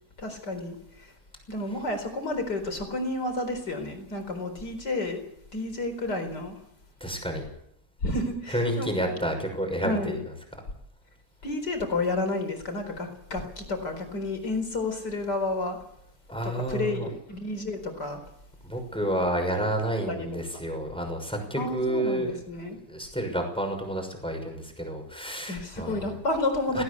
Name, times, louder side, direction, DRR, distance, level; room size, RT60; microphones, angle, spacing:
voice 1, 0.2-1.1 1.5-5.2 5.5-6.6 8.0-8.9 9.8-10.2 11.4-15.8 16.4-18.2 20.1-20.3 20.5-20.6 21.5-22.8 25.5-26.8, left 2 dB, 85° left, 7 dB, 5.0 m, -31 dB
voice 2, 7.0-7.4 8.5-10.2 16.3-17.1 18.6-22.4 22.9-26.0 26.7-26.8, right 1 dB, 5° left, 3 dB, 6.1 m, -30 dB
18.5 x 18.0 x 8.4 m, 0.74 s
omnidirectional pair, 1.8 m